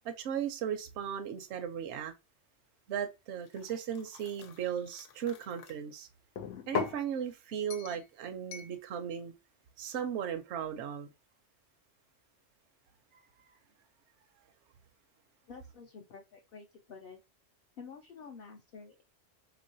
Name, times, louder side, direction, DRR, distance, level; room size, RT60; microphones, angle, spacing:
voice 1, 0.0-2.1 2.9-6.1 6.7-9.3 9.8-11.1 13.1-13.2, right 8 dB, 75° right, 0.9 m, -36 dB
sound 1, 3.5-5.7 6.4-7.0 7.7-8.0 8.5-8.7, left 7 dB, 85° left, 0.9 m, -40 dB
voice 2, 15.5-17.2 17.8-19.0, left 5 dB, 60° left, 0.7 m, -49 dB
3.4 x 3.0 x 2.6 m
omnidirectional pair, 1.2 m